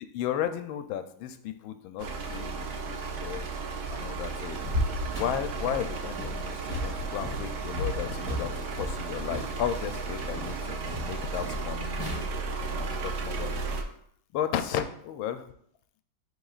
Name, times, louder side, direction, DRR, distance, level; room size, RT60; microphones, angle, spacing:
voice 1, 0.1-3.5 3.9-4.6 5.2-12.0 12.7-13.5 14.3-15.5, left 10 dB, 75° left, 9 dB, 1.3 m, -34 dB
sound 1, 2.0-13.8, right 4 dB, 65° right, 1.0 m, -34 dB
sound 2, 4.6-12.2, left 1 dB, 45° right, 1.7 m, -36 dB
9.9 x 3.9 x 2.4 m, 0.66 s
omnidirectional pair, 2.3 m